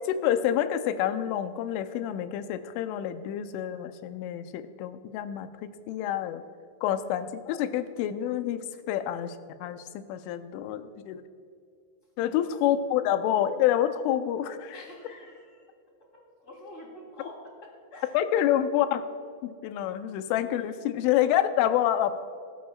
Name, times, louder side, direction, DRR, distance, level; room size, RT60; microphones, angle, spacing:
voice 1, 0.0-6.4 6.8-11.2 12.2-14.8 18.1-19.1 19.4-22.2, left 11 dB, 85° left, 9 dB, 3.1 m, -28 dB
voice 2, 12.2-12.5 14.7-15.7 16.1-18.4, left 1 dB, 20° left, -2 dB, 2.5 m, -47 dB
23.5 x 13.0 x 2.4 m, 2.4 s
omnidirectional pair, 5.5 m